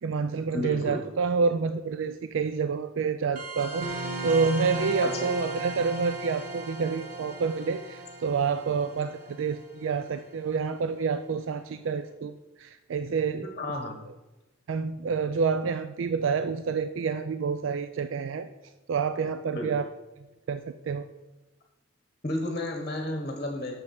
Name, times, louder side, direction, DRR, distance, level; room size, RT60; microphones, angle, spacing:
voice 1, 0.0-13.5 14.7-18.5 18.9-19.9 20.5-21.1, right 5 dB, 85° right, 10 dB, 0.4 m, -28 dB
voice 2, 0.5-1.0 5.0-5.3 13.6-14.0 19.5-19.7 22.2-23.7, left 1 dB, 35° left, 3 dB, 1.1 m, -32 dB
sound 1, 3.4-10.5, right 2 dB, 45° right, 1.4 m, -36 dB
6.5 x 6.0 x 7.0 m, 1.1 s
head